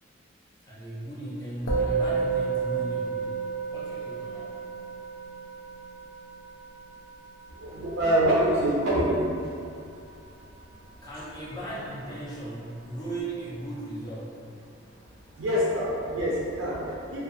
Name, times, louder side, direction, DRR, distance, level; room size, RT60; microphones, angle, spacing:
voice 1, 0.6-4.7 10.5-10.6 11.0-14.4, right 1 dB, 20° left, -7 dB, 0.5 m, -37 dB
Musical instrument, 1.7-11.2, right 5 dB, 75° left, 0.4 m, -33 dB
voice 2, 7.5-9.4 15.3-17.2, right 1 dB, 75° right, -7 dB, 0.4 m, -25 dB
2.4 x 2.3 x 2.5 m, 2.5 s
head